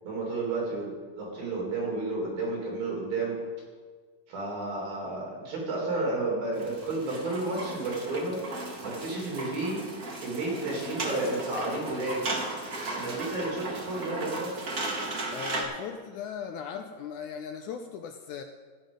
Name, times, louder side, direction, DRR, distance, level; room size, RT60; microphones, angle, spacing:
voice 1, 0.0-3.4 4.3-8.4 8.8-9.8 10.2-12.2 12.9-14.5, right 2 dB, 85° right, -2 dB, 5.4 m, -31 dB
sound 1, 6.5-15.6, right 2 dB, 45° right, 1.2 m, -36 dB
voice 2, 12.9-13.2 15.3-18.4, left 7 dB, 80° left, 6 dB, 1.8 m, -38 dB
15.0 x 9.2 x 5.2 m, 1.5 s
omnidirectional pair, 4.0 m